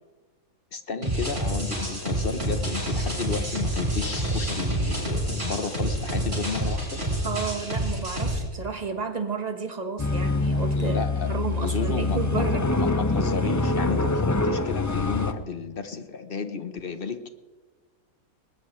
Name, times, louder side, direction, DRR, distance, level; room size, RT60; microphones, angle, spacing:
voice 1, 0.7-7.0 10.7-11.3 11.6-12.4 12.7-17.3, left 5 dB, 45° left, 9 dB, 1.1 m, -32 dB
sound 1, 1.0-8.4, right 1 dB, 45° right, 7.7 m, -28 dB
voice 2, 7.2-12.8, right 4 dB, 30° right, 6 dB, 1.4 m, -32 dB
sound 2, 10.0-15.3, left 3 dB, 25° left, 0.4 m, -25 dB
21.0 x 20.0 x 3.3 m, 1.3 s
omnidirectional pair, 1.5 m